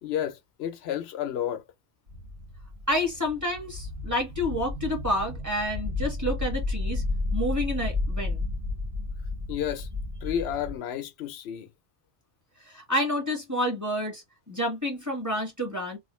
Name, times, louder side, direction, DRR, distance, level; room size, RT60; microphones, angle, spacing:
voice 1, 0.0-1.6 9.5-9.9 10.2-11.7, left 10 dB, 75° left, 0.8 m, -31 dB
sound 1, 2.1-10.8, left 2 dB, 60° right, 1.6 m, -32 dB
voice 2, 2.9-7.0 7.3-8.5 12.6-16.0, left 1 dB, 15° right, 1.4 m, -29 dB
3.1 x 2.5 x 3.0 m
omnidirectional pair, 1.1 m